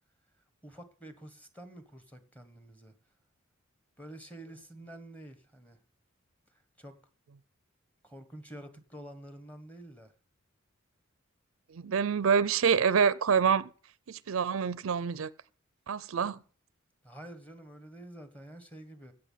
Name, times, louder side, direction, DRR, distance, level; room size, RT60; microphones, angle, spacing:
voice 1, 0.6-2.9 4.0-5.8 6.8-7.0 8.0-10.1 17.0-19.1, right 1 dB, 5° left, 1.4 m, -48 dB
voice 2, 11.7-13.7 14.1-15.3 15.9-16.4, right 6 dB, 75° right, 0.5 m, -26 dB
16.0 x 6.6 x 5.7 m
head